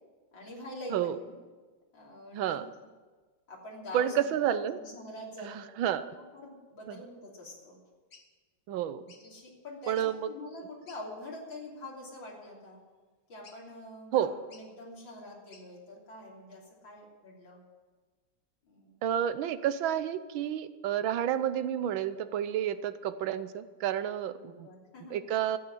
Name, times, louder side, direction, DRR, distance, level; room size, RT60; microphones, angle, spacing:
voice 1, 0.3-1.4 1.9-2.6 3.5-7.8 8.7-8.9 9.2-10.0 10.3-12.8 13.3-17.6 18.6-19.1 24.3-25.2, left 1 dB, 75° left, -3 dB, 4.0 m, -45 dB
voice 2, 2.3-2.7 3.9-4.8 5.4-6.1 6.9-7.0 8.7-9.0 9.9-10.3 14.1-14.3 19.0-24.7 25.1-25.6, right 10 dB, 85° right, 13 dB, 1.6 m, -30 dB
sound 1, 8.1-8.3 9.1-9.3 9.8-10.2 10.9-11.0 11.6-11.8 13.4-13.8 14.5-14.7 15.5-15.7, left 4 dB, 50° left, 2.1 m, -57 dB
14.0 x 8.5 x 9.9 m, 1.3 s
omnidirectional pair, 2.1 m